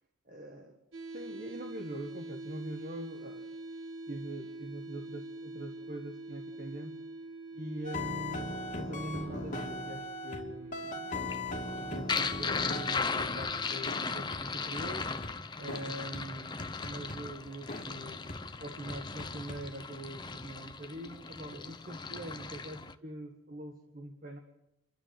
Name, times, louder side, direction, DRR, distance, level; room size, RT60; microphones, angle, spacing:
voice 1, 0.2-0.8 1.1-3.6 4.1-7.0 7.5-11.1 11.5-15.1 15.6-24.4, right 1 dB, 40° right, 2 dB, 1.7 m, -43 dB
sound 1, 0.9-14.9, right 2 dB, 75° right, 1.9 m, -46 dB
sound 2, 7.8-10.4 10.7-13.5 13.9-14.0 14.3-14.4 14.8-15.3 15.7-15.8 16.1-16.2 16.6-17.2 17.7-17.8 18.3-18.4 18.9-19.6, left 2 dB, 35° left, 2.7 m, -39 dB
sound 3, 11.1-22.9, left 4 dB, 20° left, 0.7 m, -37 dB
28.0 x 12.0 x 7.7 m, 0.86 s
head